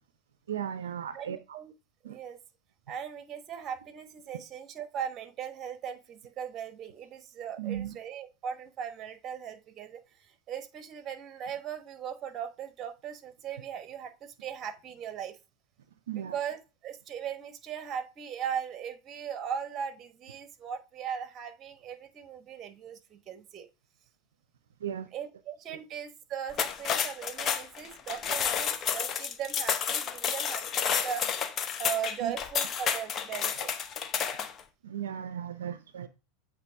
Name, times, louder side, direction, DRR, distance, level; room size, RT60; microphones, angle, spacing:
voice 1, 0.5-1.6 2.0-2.2 7.6-8.0 16.1-16.4 24.8-25.1 32.2-32.3 34.8-36.1, right 9 dB, 85° right, 0.5 m, -36 dB
voice 2, 1.1-1.7 2.0-2.4 2.9-15.4 16.1-23.7 25.1-31.2 31.8-33.7, right 8 dB, 35° right, 1.1 m, -38 dB
sound 1, 26.5-34.6, left 7 dB, 35° left, 0.7 m, -30 dB
8.1 x 3.0 x 4.5 m
hypercardioid pair, 95°, 0 cm